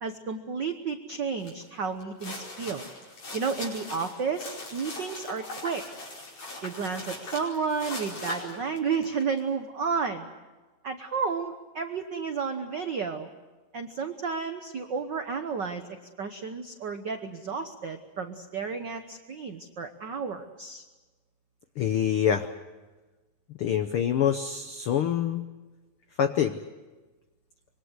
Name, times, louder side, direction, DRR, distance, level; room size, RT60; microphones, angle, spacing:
voice 1, 0.0-2.9 3.3-5.8 6.6-10.3 10.8-13.3 13.7-15.8 16.2-20.8, right 5 dB, 75° right, 7 dB, 1.0 m, -32 dB
sound 1, 1.4-1.6 2.0-9.4, left 2 dB, 55° left, 6.2 m, -40 dB
voice 2, 21.8-22.5 23.6-25.4 26.2-26.6, left 9 dB, 80° left, 9 dB, 1.2 m, -25 dB
25.0 x 23.5 x 8.1 m, 1.2 s
omnidirectional pair, 3.7 m